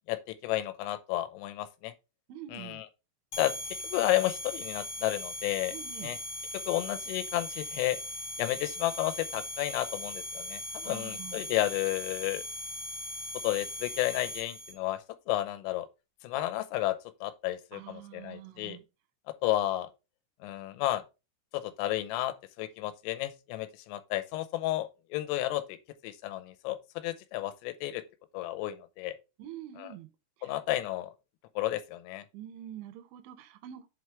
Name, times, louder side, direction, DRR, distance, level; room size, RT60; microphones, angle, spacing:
voice 1, 0.1-1.9 2.5-2.9 3.4-3.6 3.9-5.8 6.0-6.2 6.7-8.0 8.4-12.4 13.4-15.0 15.3-15.9 16.2-18.8 19.4-19.9 20.4-21.0 21.5-25.8 26.0-28.0 28.3-29.2 29.8-29.9 30.4-31.1 31.6-32.2, left 15 dB, 85° left, 3.2 m, -32 dB
voice 2, 2.3-2.8 5.7-6.1 10.8-11.4 17.7-18.8 29.4-30.1 30.4-30.5 32.3-33.9, right 11 dB, 80° right, 2.9 m, -45 dB
sound 1, 3.3-14.7, left 1 dB, 50° left, 2.5 m, -39 dB
7.6 x 3.2 x 4.4 m
omnidirectional pair, 5.9 m